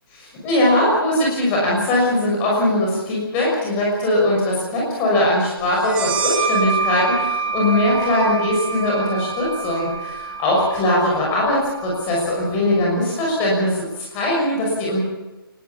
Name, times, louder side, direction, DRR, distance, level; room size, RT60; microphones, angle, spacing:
voice 1, 0.4-15.0, left 1 dB, 10° left, -3 dB, 6.3 m, -20 dB
sound 1, 5.8-13.1, right 5 dB, 10° right, 1.9 m, -27 dB
23.5 x 20.5 x 7.3 m, 1.1 s
hypercardioid pair, 180°, 13 cm